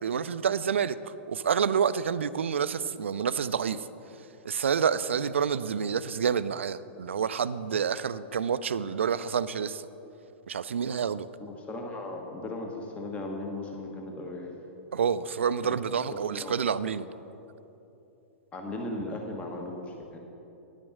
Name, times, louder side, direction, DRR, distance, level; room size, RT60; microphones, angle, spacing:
voice 1, 0.0-3.9 4.4-9.8 10.5-11.3 14.9-17.1, right 7 dB, 70° right, 15 dB, 0.4 m, -28 dB
voice 2, 11.4-14.5 16.3-16.6 18.5-20.2, left 2 dB, 20° left, 1 dB, 1.2 m, -37 dB
10.5 x 9.0 x 6.0 m, 3.0 s
figure-of-eight pair, 105°, 7 cm